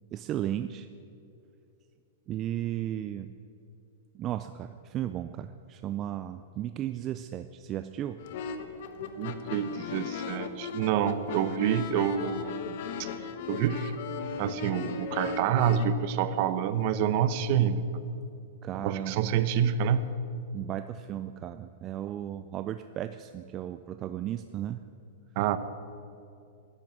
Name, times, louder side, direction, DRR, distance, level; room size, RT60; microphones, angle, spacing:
voice 1, 0.1-0.9 2.3-3.3 4.1-8.2 18.6-19.4 20.5-24.8, right 12 dB, 30° right, 10 dB, 0.4 m, -35 dB
sound 1, 8.2-15.9, left 5 dB, 55° left, 1.3 m, -37 dB
voice 2, 9.2-13.1 13.5-13.9 14.4-17.8 18.8-20.0 25.4-25.6, right 9 dB, 45° right, 13 dB, 0.9 m, -27 dB
14.0 x 11.0 x 9.0 m, 2.6 s
hypercardioid pair, 150°, 0 cm